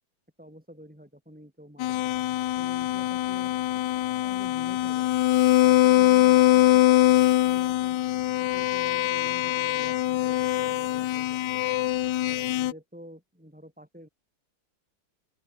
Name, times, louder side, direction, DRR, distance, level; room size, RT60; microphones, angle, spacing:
voice 1, 0.4-2.2 2.6-3.5 4.2-8.0 8.4-11.8 12.3-14.1, equal, 5° right, 5.9 m, -48 dB
sound 1, 1.8-12.7, left 14 dB, 75° left, 1.3 m, -23 dB
open air
omnidirectional pair, 2.0 m